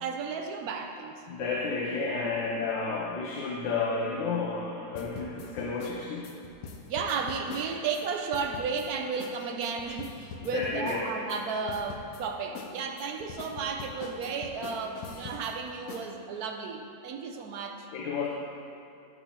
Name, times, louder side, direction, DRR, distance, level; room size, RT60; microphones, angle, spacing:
voice 1, 0.0-1.2 2.0-2.2 6.9-17.9, right 5 dB, 70° right, 4 dB, 0.9 m, -33 dB
voice 2, 1.3-6.3 10.4-11.1 17.9-18.3, left 4 dB, 85° left, -3 dB, 1.4 m, -31 dB
sound 1, 4.9-8.1 8.3-8.9 9.2-9.4 9.6-11.4 11.7-12.2 12.5-15.5 15.9-16.1, left 5 dB, 65° left, 0.9 m, -42 dB
11.0 x 6.0 x 2.8 m, 2.7 s
omnidirectional pair, 2.0 m